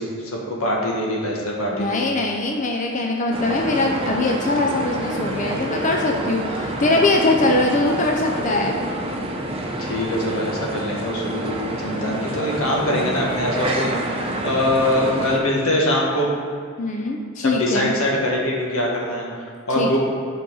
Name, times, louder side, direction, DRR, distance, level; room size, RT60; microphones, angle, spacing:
voice 1, 0.0-2.1 9.8-16.3 17.4-20.0, left 1 dB, 90° left, -2 dB, 1.6 m, -23 dB
voice 2, 1.7-8.8 12.9-13.2 16.8-17.9 19.8-20.0, left 2 dB, 35° left, 0 dB, 0.5 m, -22 dB
sound 1, 3.3-15.4, right 1 dB, 25° right, 0.8 m, -27 dB
9.4 x 5.4 x 3.9 m, 2.3 s
head